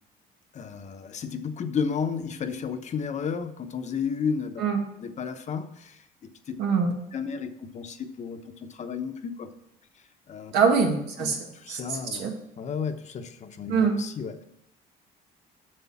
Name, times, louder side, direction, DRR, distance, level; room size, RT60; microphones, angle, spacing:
voice 1, 0.5-4.6 5.0-6.6 7.1-9.5 10.3-10.5 11.2-14.4, left 6 dB, 45° left, 8 dB, 1.0 m, -33 dB
voice 2, 6.6-6.9 10.5-11.4 11.7-12.3 13.7-14.0, right 5 dB, 90° right, 2 dB, 2.0 m, -24 dB
7.9 x 6.8 x 7.2 m, 0.77 s
cardioid pair, 110°, 17 cm